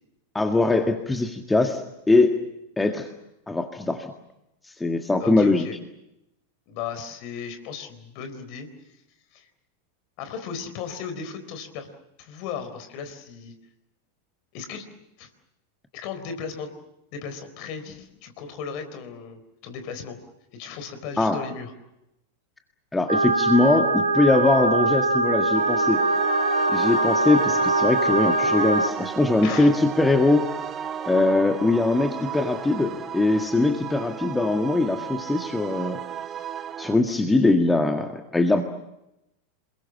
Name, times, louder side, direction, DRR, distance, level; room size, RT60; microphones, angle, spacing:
voice 1, 0.3-2.4 2.8-3.1 3.5-4.1 4.8-5.6 21.2-21.4 22.9-26.0 26.7-30.5 31.1-36.0 36.8-38.6, left 2 dB, 10° left, 5 dB, 1.7 m, -21 dB
voice 2, 5.2-5.8 6.7-8.7 9.3-9.5 10.2-11.9 12.2-13.5 14.5-14.9 15.2-15.3 15.9-16.7 17.1-20.2 20.5-21.7 29.4-29.7, left 6 dB, 45° left, 9 dB, 4.0 m, -36 dB
sound 1, 23.1-28.9, right 2 dB, 80° right, 1.6 m, -22 dB
sound 2, 25.5-37.0, right 8 dB, 25° right, 1.0 m, -34 dB
28.0 x 22.0 x 7.4 m, 0.87 s
figure-of-eight pair, 90°, 0 cm